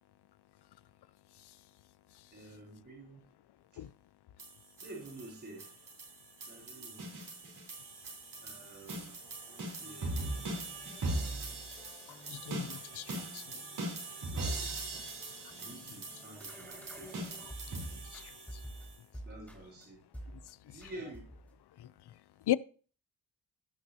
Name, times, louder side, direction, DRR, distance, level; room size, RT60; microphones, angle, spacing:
voice 1, 2.3-3.2 3.7-3.8 4.8-5.7 6.5-7.0 8.4-9.1 9.4-10.4 14.3-14.7 15.6-17.2 19.2-20.0 20.6-21.3, right 2 dB, 35° right, 3.2 m, -49 dB
sound 1, 4.4-18.9, right 2 dB, 75° right, 4.0 m, -41 dB
sound 2, 8.1-17.8 18.1-19.8 20.1-20.5 20.8-21.6, equal, 5° left, 3.0 m, -53 dB
voice 2, 12.3-13.4 18.1-18.2 22.5-22.6, left 13 dB, 85° left, 0.5 m, -34 dB
17.0 x 6.1 x 2.8 m
wide cardioid pair, 165°, 39 cm